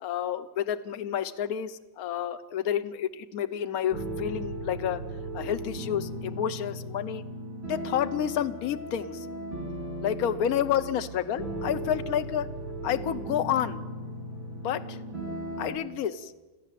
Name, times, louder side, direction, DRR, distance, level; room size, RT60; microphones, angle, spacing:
voice 1, 0.0-5.0 5.3-7.2 7.6-9.3 10.0-12.5 12.8-13.8 14.6-15.0 15.6-16.3, left 9 dB, 55° left, 10 dB, 1.2 m, -30 dB
sound 1, 3.9-15.7, right 1 dB, 75° right, 6.1 m, -37 dB
26.5 x 14.0 x 7.6 m, 1.2 s
omnidirectional pair, 2.1 m